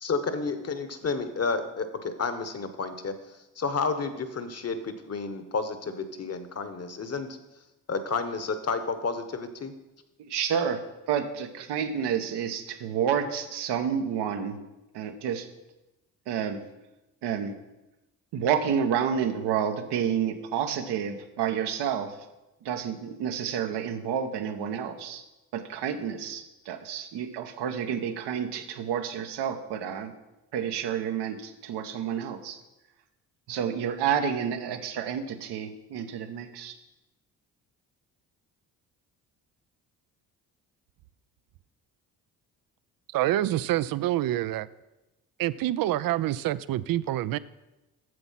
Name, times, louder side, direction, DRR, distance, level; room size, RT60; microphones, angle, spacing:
voice 1, 0.0-3.1 3.6-7.4 7.9-9.7, left 4 dB, 35° left, 10 dB, 1.2 m, -31 dB
voice 2, 10.3-10.8 11.1-14.6 14.9-15.5 16.3-16.6 17.2-17.5 18.3-22.1 22.6-25.2 25.5-30.1 30.5-32.6 33.5-36.7, right 8 dB, 70° right, 8 dB, 1.1 m, -29 dB
voice 3, 43.1-44.7 45.4-47.4, right 14 dB, 55° right, 17 dB, 0.5 m, -27 dB
7.9 x 7.0 x 5.7 m, 1.0 s
hypercardioid pair, 55°, 42 cm